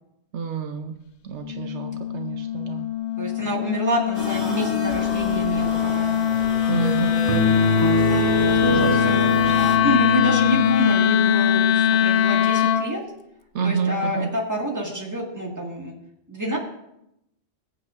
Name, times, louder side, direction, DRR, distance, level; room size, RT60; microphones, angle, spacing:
voice 1, 0.3-1.0 1.2-2.9 6.7-7.7 8.7-9.5 13.5-14.3, right 6 dB, 75° right, 6 dB, 1.0 m, -29 dB
Wind instrument woodwind instrument, 1.4-12.9, left 9 dB, 75° left, 0.9 m, -22 dB
voice 2, 3.2-6.1 8.4-9.2 9.8-13.0 13.6-15.9 16.3-16.6, equal, 15° right, -2 dB, 2.0 m, -28 dB
sound 1, 4.1-9.8, equal, 35° right, 4.1 m, -33 dB
sound 2, 7.3-10.8, left 1 dB, 25° left, 0.6 m, -23 dB
21.0 x 8.0 x 2.6 m, 0.83 s
omnidirectional pair, 1.2 m